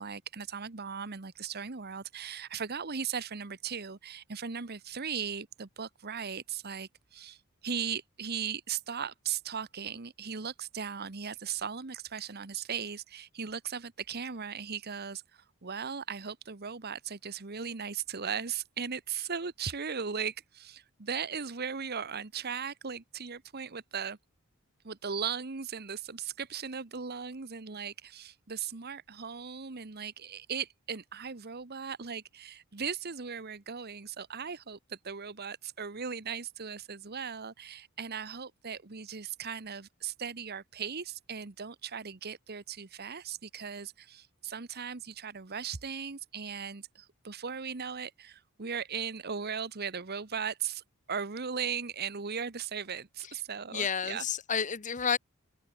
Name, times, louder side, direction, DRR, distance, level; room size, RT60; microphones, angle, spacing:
voice 1, 0.0-24.2 24.8-54.2, right 6 dB, 45° right, 1.1 m, -38 dB
voice 2, 53.7-55.2, left 7 dB, 35° left, 0.8 m, -30 dB
open air
head